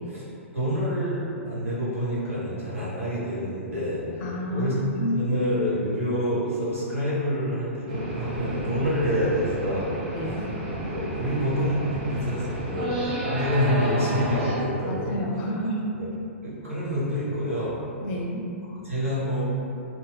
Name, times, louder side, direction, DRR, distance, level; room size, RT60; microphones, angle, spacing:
voice 1, 0.5-4.7 5.1-9.9 10.3-10.4 10.9-15.1 16.4-17.8 18.8-19.4, equal, 80° right, -9 dB, 1.1 m, -27 dB
voice 2, 4.2-4.7 5.0-5.3 10.1-10.5 14.9-15.8 18.0-18.4, left 1 dB, 35° left, -1 dB, 0.4 m, -29 dB
sound 1, 7.9-14.6, right 1 dB, 45° right, 0.7 m, -31 dB
2.6 x 2.0 x 3.3 m, 2.7 s
figure-of-eight pair, 110°, 7 cm